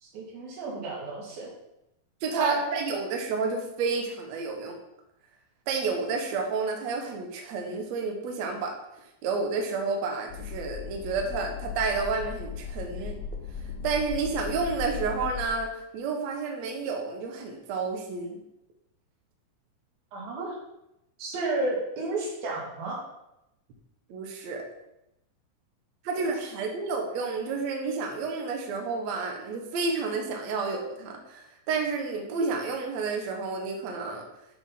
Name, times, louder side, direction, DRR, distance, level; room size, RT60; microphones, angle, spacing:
voice 1, 0.0-1.5 2.4-2.6 20.1-20.6 21.2-23.0, right 2 dB, 90° right, -4 dB, 4.0 m, -32 dB
voice 2, 2.2-4.8 5.7-8.8 9.2-13.2 13.8-18.4 24.1-24.6 26.0-34.2, right 4 dB, 65° right, 2 dB, 2.0 m, -30 dB
sound 1, 10.3-15.5, left 6 dB, 75° left, 1.9 m, -37 dB
9.3 x 4.5 x 5.6 m, 0.87 s
omnidirectional pair, 4.1 m